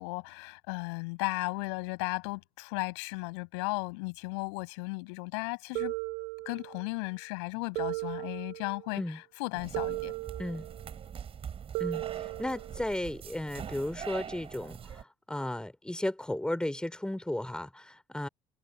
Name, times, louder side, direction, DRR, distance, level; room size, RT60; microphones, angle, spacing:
voice 1, 0.0-5.9 6.4-10.1, left 31 dB, 65° left, 8.0 m, -35 dB
sound 1, 5.8-6.9 7.8-8.9 9.7-10.9 11.7-12.9, right 30 dB, 60° right, 1.3 m, -36 dB
sound 2, 9.5-15.0, right 8 dB, 35° right, 4.7 m, -43 dB
voice 2, 11.8-18.3, left 1 dB, 5° left, 3.7 m, -35 dB
figure-of-eight pair, 55°, 16 cm